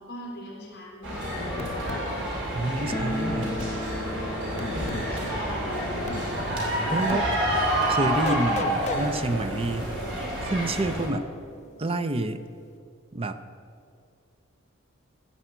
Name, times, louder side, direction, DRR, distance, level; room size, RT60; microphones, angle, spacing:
voice 1, 0.0-1.7 5.0-6.5, left 1 dB, 50° left, -2 dB, 3.6 m, -41 dB
sound 1, 1.0-11.1, right 1 dB, 60° right, 3.1 m, -28 dB
sound 2, 1.6-2.1 3.6-3.8 4.6-5.1 6.1-6.3 7.1-7.3 8.2-9.0, left 4 dB, 35° left, 0.4 m, -34 dB
voice 2, 2.5-3.6 6.9-7.3 7.9-10.0 10.4-11.3 11.8-12.4 13.1-13.4, right 2 dB, 25° right, 10 dB, 0.5 m, -28 dB
sound 3, 2.9-9.6 9.9-10.0 10.2-10.3 11.1-11.2 11.5-12.7, left 1 dB, 10° left, 1.7 m, -38 dB
15.5 x 5.6 x 7.9 m, 2.3 s
head